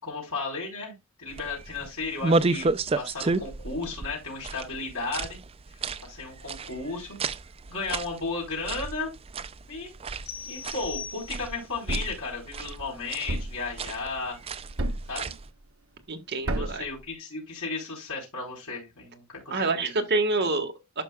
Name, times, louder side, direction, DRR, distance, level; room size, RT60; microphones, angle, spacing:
voice 1, 0.0-2.7 2.9-5.4 6.0-7.2 7.7-9.1 9.7-9.9 10.5-14.4 15.1-15.3 16.4-19.9 20.4-20.5, left 3 dB, 75° left, 4.3 m, -34 dB
sound 1, 1.3-15.5, right 3 dB, 25° right, 0.4 m, -33 dB
sound 2, 10.3-11.8, left 7 dB, 50° left, 1.7 m, -40 dB
Thump thud, 11.9-12.3 13.3-13.7 14.8-15.2 16.5-16.9, right 1 dB, 65° right, 1.1 m, -29 dB
voice 2, 16.1-16.8 19.5-21.0, right 3 dB, 50° right, 1.5 m, -27 dB
12.0 x 5.8 x 2.3 m
head